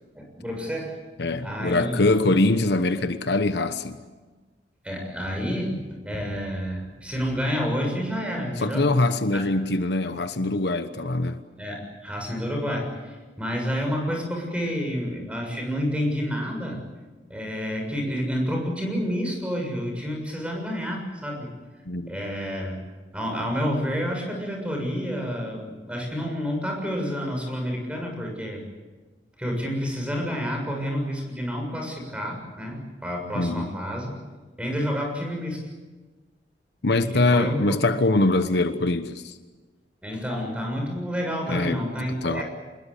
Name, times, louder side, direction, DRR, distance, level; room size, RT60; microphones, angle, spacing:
voice 1, 0.2-1.0 1.4-2.1 4.8-8.9 9.3-9.4 11.6-16.8 17.3-21.5 22.1-22.8 23.1-28.6 29.4-34.1 34.6-35.7 37.1-37.8 40.0-42.4, equal, 5° right, 6.9 m, -29 dB
voice 2, 1.2-4.0 8.6-11.4 21.9-22.1 33.3-33.7 36.8-39.4 41.5-41.8 42.2-42.4, left 2 dB, 65° left, 1.2 m, -23 dB
27.5 x 21.0 x 8.4 m
head